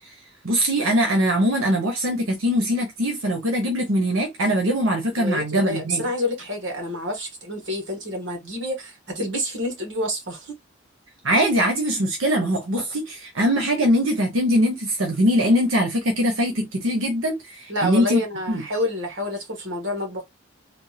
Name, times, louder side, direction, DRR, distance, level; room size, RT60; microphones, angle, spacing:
voice 1, 0.4-6.0 11.2-18.2 18.5-18.6, equal, 80° right, 1.0 m, -22 dB
voice 2, 5.2-10.6 17.7-20.2, left 1 dB, 60° right, 1.3 m, -28 dB
3.5 x 2.3 x 2.8 m
head